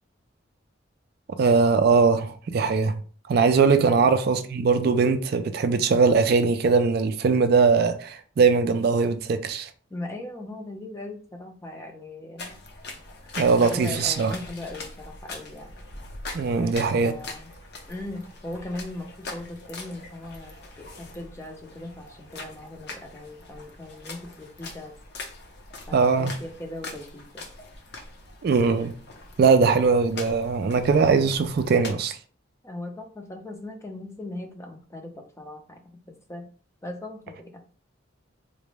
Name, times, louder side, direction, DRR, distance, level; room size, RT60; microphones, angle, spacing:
voice 1, 1.3-3.0 3.3-9.7 13.4-14.3 16.3-17.1 25.9-26.3 28.4-28.9 29.4-32.2, right 5 dB, 50° right, 0.3 m, -21 dB
voice 2, 9.9-12.5 13.6-15.8 16.5-16.8 17.0-17.5 17.9-25.0 25.9-27.4 32.6-36.5 36.8-37.6, left 1 dB, 15° left, 0.4 m, -39 dB
sound 1, 12.4-31.9, left 2 dB, 55° left, 0.6 m, -42 dB
3.9 x 2.0 x 3.3 m
head